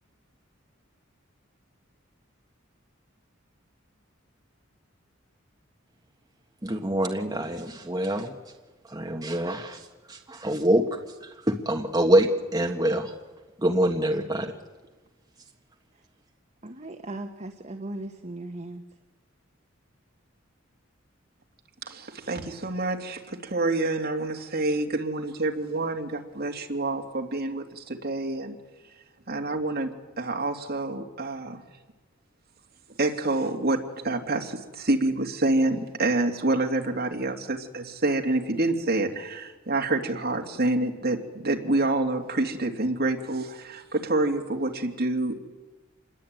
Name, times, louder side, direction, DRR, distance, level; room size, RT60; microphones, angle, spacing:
voice 1, 6.6-8.3 8.9-10.8 11.2-13.1 13.6-14.5, right 1 dB, 20° right, 2 dB, 1.5 m, -25 dB
voice 2, 16.6-18.8, right 2 dB, 35° right, 5 dB, 1.3 m, -38 dB
voice 3, 21.8-28.6 29.3-29.9 30.2-31.6 33.0-45.4, right 2 dB, 50° right, 2 dB, 2.9 m, -27 dB
27.5 x 21.5 x 9.2 m, 1.3 s
head